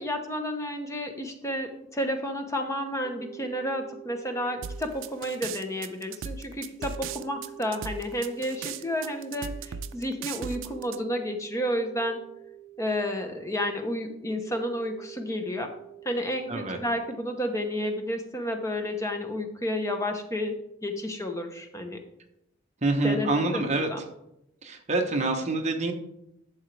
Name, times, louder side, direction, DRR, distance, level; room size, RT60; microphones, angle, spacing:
voice 1, 0.0-12.2 12.8-15.7 16.0-22.0 23.0-24.0, equal, 15° left, 4 dB, 0.9 m, -31 dB
sound 1, 2.4-17.8, right 11 dB, 50° left, 1.9 m, -48 dB
sound 2, 4.6-11.0, right 6 dB, 65° right, 0.4 m, -37 dB
voice 2, 22.8-23.9 24.6-25.9, right 2 dB, 35° right, 3 dB, 1.1 m, -26 dB
12.0 x 7.2 x 3.4 m, 0.81 s
head